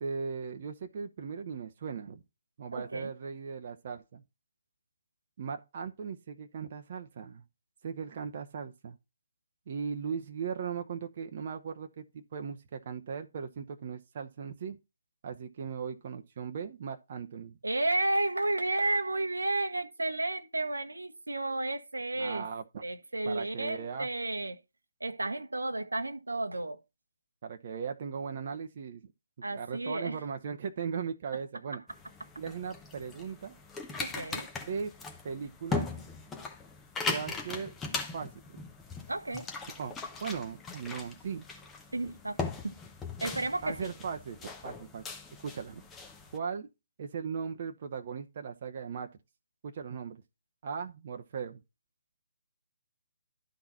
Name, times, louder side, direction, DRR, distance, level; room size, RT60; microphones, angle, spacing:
voice 1, 0.0-2.2 2.6-4.2 5.4-7.4 7.8-9.0 9.7-14.8 15.2-17.6 22.1-22.8 23.3-24.1 27.4-29.0 29.5-31.8 32.4-33.6 34.7-34.9 35.2-36.0 37.1-37.7 38.1-38.6 39.8-39.9 40.2-41.5 43.6-45.1 45.4-45.8 46.3-46.7 47.0-49.1 49.6-50.2 50.6-51.6, right 6 dB, 45° right, 0.8 m, -38 dB
voice 2, 2.7-3.1 17.6-22.4 22.8-24.6 25.0-26.8 29.4-30.2 34.0-34.5 39.1-39.5 41.9-42.7 43.2-43.9, right 2 dB, 85° right, 1.1 m, -32 dB
sound 1, 31.9-46.4, left 4 dB, 10° left, 0.9 m, -39 dB
11.5 x 4.0 x 4.2 m
figure-of-eight pair, 145°, 0 cm